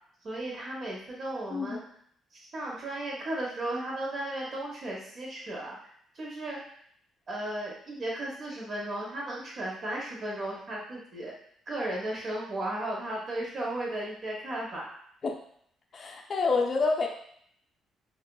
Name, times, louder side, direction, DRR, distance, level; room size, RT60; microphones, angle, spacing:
voice 1, 0.2-1.8 2.3-5.8 6.1-6.6 7.3-11.3 11.7-14.9, right 1 dB, 45° right, -3 dB, 1.0 m, -35 dB
voice 2, 1.5-1.8 15.2-15.3 15.9-17.1, left 4 dB, 40° left, 2 dB, 0.4 m, -27 dB
2.8 x 2.4 x 2.2 m, 0.65 s
cardioid pair, 110°, 0 cm